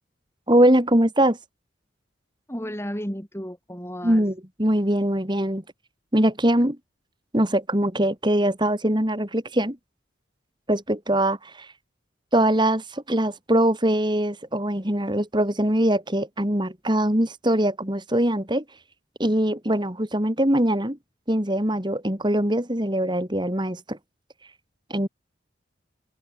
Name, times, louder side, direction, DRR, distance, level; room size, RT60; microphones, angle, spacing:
voice 1, 0.5-1.4 4.0-5.6 6.1-6.8 7.3-9.8 10.7-11.7 12.3-18.6 19.2-21.0 21.3-24.0 24.9-25.1, right 1 dB, 25° right, 3.2 m, -22 dB
voice 2, 2.5-4.2, equal, 15° left, 7.1 m, -33 dB
open air
head